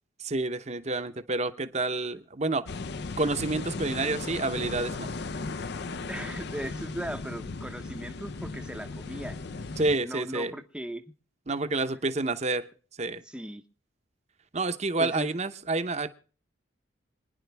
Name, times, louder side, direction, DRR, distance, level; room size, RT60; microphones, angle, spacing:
voice 1, 0.2-2.6 3.2-5.1 6.0-6.3 9.8-10.5 11.5-12.6 13.0-13.2 14.5-16.1, right 3 dB, 35° right, 10 dB, 0.9 m, -29 dB
sound 1, 2.7-10.0, left 3 dB, 55° left, 0.6 m, -36 dB
voice 2, 6.1-9.4 10.0-11.0 13.3-13.6 15.0-15.3, right 1 dB, 5° right, 6 dB, 0.8 m, -38 dB
26.5 x 10.5 x 3.5 m, 0.42 s
head